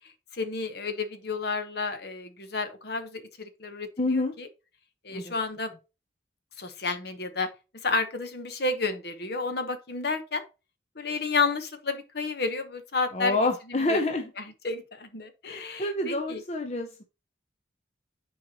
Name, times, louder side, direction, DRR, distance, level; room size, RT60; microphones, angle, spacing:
voice 1, 0.3-4.5 5.0-5.7 6.6-7.5 7.8-10.4 11.0-13.4 13.9-14.0 14.4-16.4, left 4 dB, 55° left, 1.1 m, -31 dB
voice 2, 4.0-4.3 5.1-5.3 13.1-14.3 15.5-17.0, left 2 dB, 35° left, 0.7 m, -28 dB
8.8 x 4.5 x 2.9 m
head